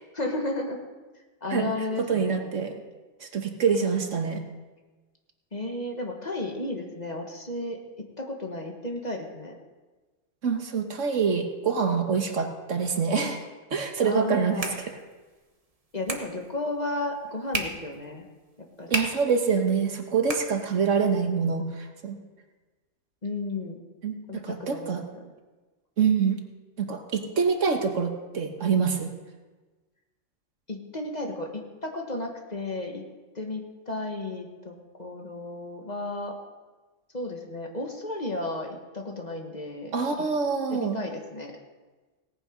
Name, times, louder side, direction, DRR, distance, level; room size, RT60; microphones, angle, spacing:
voice 1, 0.1-0.8 1.4-2.4 5.5-9.6 14.0-14.7 15.9-18.2 18.6-19.0 23.2-23.8 24.3-25.0 30.7-33.0 33.3-36.3 37.1-39.9 40.7-41.6, left 2 dB, 35° left, 2 dB, 1.6 m, -33 dB
voice 2, 2.0-2.8 3.2-4.4 10.4-13.4 13.7-14.7 18.9-22.2 24.0-24.1 24.5-25.0 26.0-26.4 26.8-29.1 39.9-41.0, right 5 dB, 70° right, 4 dB, 1.6 m, -25 dB
sound 1, 14.1-21.1, right 2 dB, 30° right, 1.2 m, -38 dB
17.5 x 8.9 x 5.1 m, 1.3 s
omnidirectional pair, 1.3 m